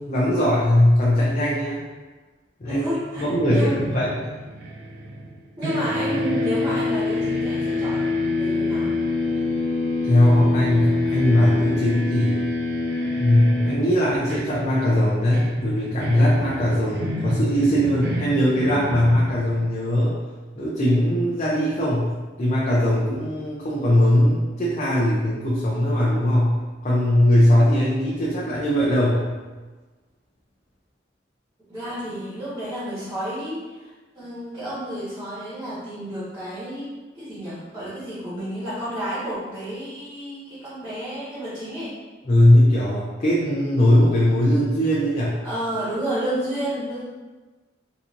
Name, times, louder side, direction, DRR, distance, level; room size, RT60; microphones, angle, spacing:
voice 1, 0.0-1.8 2.6-2.8 3.2-4.1 10.0-12.4 13.2-20.2 20.6-26.6 26.8-29.3 42.3-45.4, left 1 dB, 40° left, -6 dB, 0.5 m, -20 dB
voice 2, 2.6-3.8 5.6-8.9 31.7-42.0 45.4-47.0, equal, 20° right, -12 dB, 1.3 m, -30 dB
sound 1, 3.2-5.4 5.6-19.6, left 2 dB, 65° right, 0.6 m, -27 dB
4.0 x 2.8 x 2.5 m, 1.3 s
head